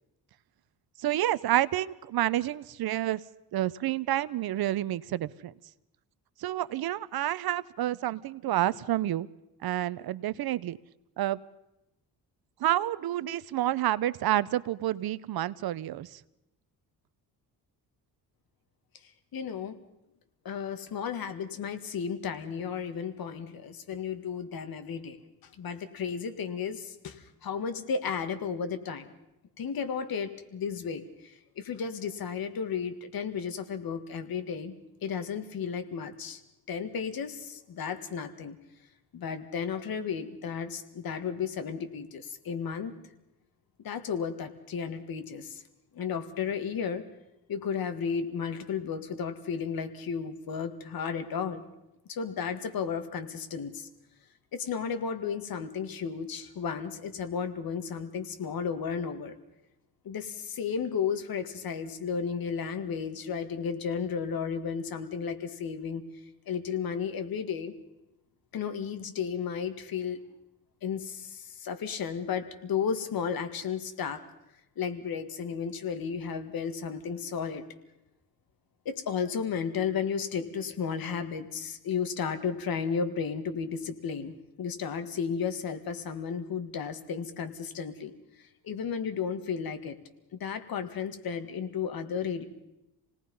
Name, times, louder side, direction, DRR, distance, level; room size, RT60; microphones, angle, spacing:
voice 1, 1.0-3.2 3.5-5.5 6.4-9.3 9.6-10.8 11.2-11.4 12.6-16.2, right 13 dB, 70° right, 18 dB, 0.8 m, -29 dB
voice 2, 19.3-19.8 20.4-25.2 25.4-29.1 29.6-34.8 35.0-36.4 36.7-38.6 39.1-42.9 43.8-45.6 45.9-47.0 47.5-51.6 52.1-53.9 54.5-59.4 60.0-66.0 66.5-67.7 68.5-70.2 70.8-74.2 74.8-77.6 78.9-88.1 88.4-90.0 90.3-92.4, left 6 dB, 65° left, 9 dB, 2.0 m, -33 dB
28.0 x 18.5 x 5.5 m, 0.91 s
cardioid pair, 115°, 38 cm